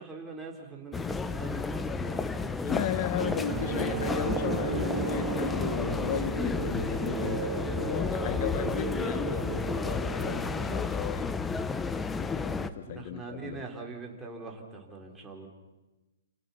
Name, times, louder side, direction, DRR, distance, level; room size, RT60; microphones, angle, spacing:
voice 1, 0.0-2.5 12.9-15.5, right 4 dB, 10° right, 0 dB, 4.5 m, -42 dB
sound 1, 0.9-12.7, left 4 dB, 10° left, 1.0 m, -32 dB
voice 2, 2.6-11.3 12.2-13.6, left 11 dB, 45° left, 14 dB, 1.3 m, -35 dB
sound 2, 3.2-10.9, right 7 dB, 30° right, 3.1 m, -35 dB
29.5 x 28.5 x 5.9 m, 1.1 s
figure-of-eight pair, 120°, 0 cm